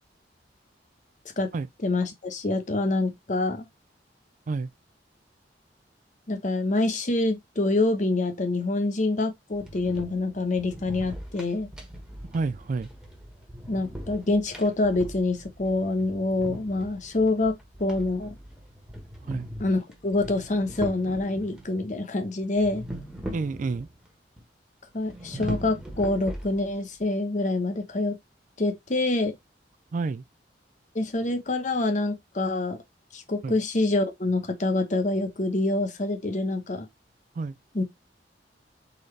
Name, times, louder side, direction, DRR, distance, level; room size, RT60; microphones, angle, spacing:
voice 1, 1.8-3.7 6.3-11.7 13.7-17.5 17.8-18.3 19.6-22.8 24.9-28.2 28.6-29.3 30.9-32.8 33.1-36.9 37.7-37.8, left 2 dB, 45° left, 1.0 m, -26 dB
sound 1, 9.5-21.7 22.6-24.1 24.4-24.5 25.0-26.9, equal, 5° right, 1.2 m, -40 dB
voice 2, 12.3-12.9 19.3-19.4 23.3-23.9 29.9-30.2 33.4-33.6 37.4-37.6, right 4 dB, 45° right, 0.4 m, -29 dB
4.0 x 4.0 x 3.2 m
head